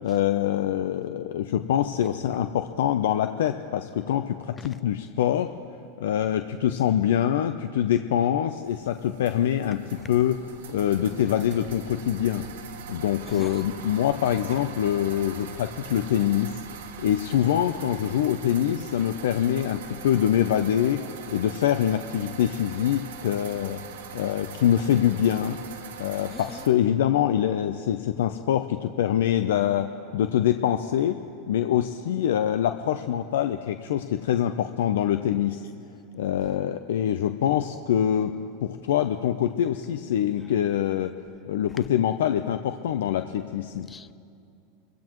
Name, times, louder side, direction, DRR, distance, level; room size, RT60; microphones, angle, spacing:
voice 1, 0.0-5.5 6.0-10.4 10.7-12.5 12.9-16.6 17.0-23.8 24.1-25.6 26.0-31.2 31.5-35.6 36.1-38.3 38.6-41.1 41.5-43.9, left 10 dB, 80° left, 0.5 m, -24 dB
sound 1, 8.7-26.7, right 6 dB, 85° right, 1.5 m, -42 dB
voice 2, 13.3-13.6 26.3-26.6 43.9-44.1, left 5 dB, 20° left, 0.3 m, -42 dB
26.0 x 15.5 x 3.1 m
hypercardioid pair, 110°, 0 cm